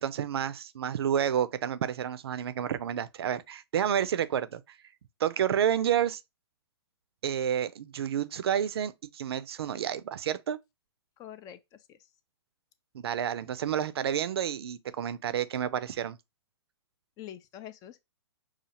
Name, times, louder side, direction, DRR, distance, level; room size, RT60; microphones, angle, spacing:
voice 1, 0.0-4.8 5.2-6.2 7.2-10.6 12.9-16.2, right 9 dB, 65° right, 0.5 m, -30 dB
voice 2, 11.2-12.0 17.2-18.0, left 11 dB, 25° left, 0.4 m, -45 dB
5.6 x 2.4 x 2.8 m
hypercardioid pair, 120°, 14 cm